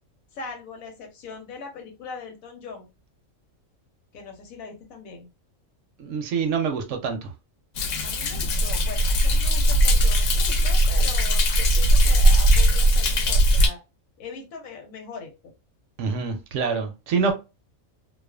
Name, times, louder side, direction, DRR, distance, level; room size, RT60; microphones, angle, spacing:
voice 1, 0.3-2.9 4.1-5.3 8.0-13.8 14.2-15.5, left 4 dB, 90° left, 1.2 m, -40 dB
voice 2, 6.0-7.3 16.0-17.3, right 5 dB, 70° right, 0.9 m, -26 dB
Thunder, 7.8-13.7, equal, 70° left, 0.9 m, -19 dB
2.4 x 2.4 x 2.3 m
omnidirectional pair, 1.4 m